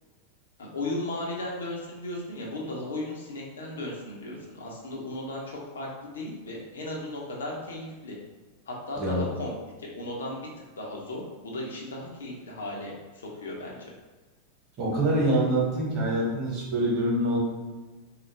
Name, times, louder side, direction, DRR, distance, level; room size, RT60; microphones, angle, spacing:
voice 1, 0.6-8.2 8.7-9.5 9.8-10.5 10.8-13.9, left 1 dB, 65° left, -2 dB, 0.6 m, -36 dB
voice 2, 14.8-17.4, right 1 dB, 35° right, -5 dB, 1.0 m, -25 dB
2.4 x 2.0 x 3.1 m, 1.2 s
figure-of-eight pair, 90°, 0 cm